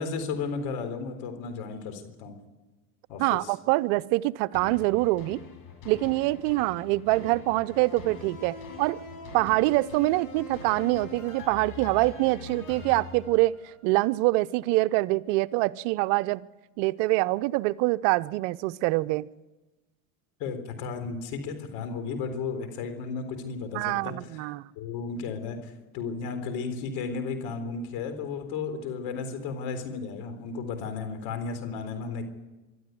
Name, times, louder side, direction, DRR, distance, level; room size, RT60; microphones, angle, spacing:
voice 1, 0.0-2.3 3.1-3.5 20.4-24.5 24.8-32.2, left 5 dB, 70° left, 8 dB, 3.9 m, -34 dB
voice 2, 3.2-5.4 5.8-9.0 9.3-13.5 13.8-16.4 16.8-19.3 23.7-24.7, right 20 dB, 75° right, 17 dB, 0.7 m, -25 dB
sound 1, 4.5-13.9 14.4-14.5, left 4 dB, 55° left, 7.1 m, -43 dB
24.5 x 12.5 x 9.3 m, 1.1 s
supercardioid pair, 90°, 38 cm